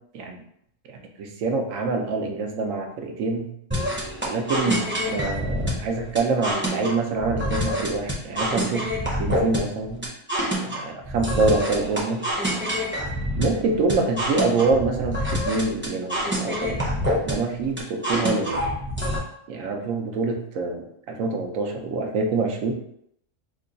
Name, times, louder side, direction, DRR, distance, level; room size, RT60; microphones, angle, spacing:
voice 1, 0.9-3.5 4.2-8.9 9.2-10.1 10.6-12.2 13.4-16.8 17.2-18.6 19.5-22.7, right 3 dB, 85° right, 3 dB, 1.0 m, -26 dB
sound 1, 3.7-19.2, equal, 15° right, 0.5 m, -27 dB
2.9 x 2.3 x 3.8 m, 0.72 s
omnidirectional pair, 1.3 m